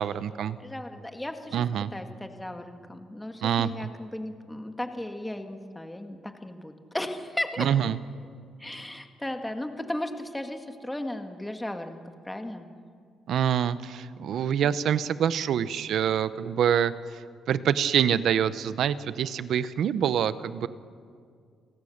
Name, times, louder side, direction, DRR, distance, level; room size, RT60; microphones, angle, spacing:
voice 1, 0.0-0.6 1.5-1.9 3.4-3.9 7.6-8.0 13.3-17.2 17.5-20.7, right 9 dB, 70° right, 14 dB, 0.9 m, -26 dB
voice 2, 0.6-1.6 1.9-7.7 8.6-12.0 12.3-12.7, left 1 dB, 10° left, 6 dB, 1.8 m, -35 dB
28.5 x 18.0 x 6.6 m, 2.1 s
cardioid pair, 90°, 0 cm